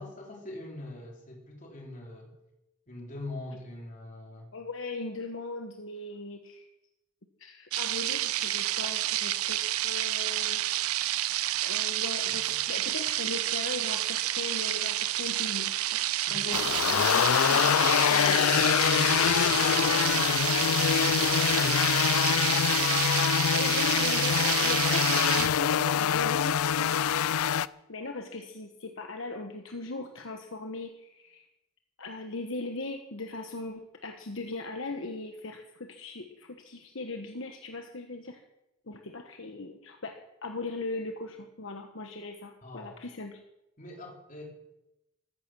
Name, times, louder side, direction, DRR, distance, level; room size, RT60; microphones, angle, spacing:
voice 1, 0.0-2.3 2.9-4.5 12.3-12.4 16.2-22.1 42.6-43.0 43.8-44.4, left 1 dB, 35° left, 0 dB, 4.0 m, -41 dB
voice 2, 4.5-6.7 7.4-10.7 11.6-15.8 16.3-16.8 23.5-27.5 27.9-31.5 32.0-38.4 38.9-43.4, left 3 dB, 65° left, 4 dB, 1.2 m, -39 dB
sound 1, 7.7-25.5, right 14 dB, 90° right, 0.6 m, -29 dB
sound 2, 16.5-27.7, left 9 dB, 90° left, 0.4 m, -25 dB
15.0 x 14.5 x 6.3 m, 0.90 s
head